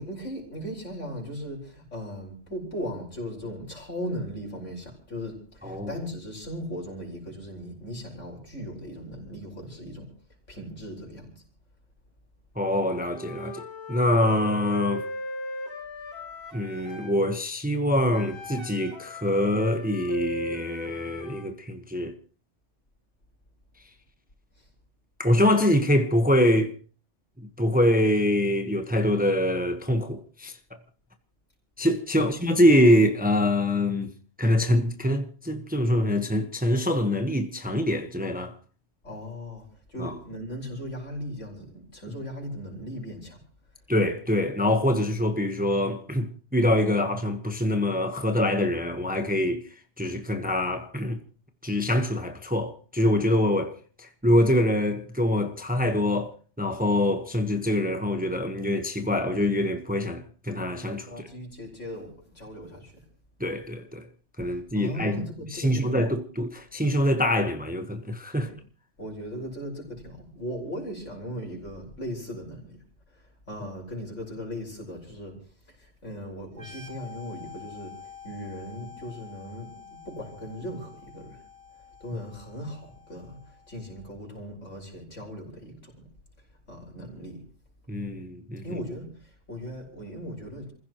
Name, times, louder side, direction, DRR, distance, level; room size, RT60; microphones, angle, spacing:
voice 1, 0.0-10.1 10.5-11.4 24.6-24.7 32.1-32.4 39.0-43.4 61.1-63.0 64.5-66.0 68.3-68.6 69.0-81.4 82.0-86.1 86.4-87.4 88.6-90.7, equal, 75° left, 5.6 m, -38 dB
voice 2, 12.6-13.6 13.9-15.0 16.5-22.1 25.2-26.7 27.4-30.5 31.8-34.1 34.4-38.5 40.0-40.1 43.9-49.6 50.0-51.2 51.6-61.1 63.4-64.1 64.4-68.5 87.9-88.8, left 1 dB, 5° right, 1.1 m, -24 dB
Wind instrument woodwind instrument, 13.1-17.2 18.1-21.5, left 1 dB, 55° left, 4.4 m, -38 dB
sound 1, 76.5-84.0, left 6 dB, 35° right, 3.2 m, -48 dB
28.5 x 16.0 x 3.1 m
omnidirectional pair, 1.3 m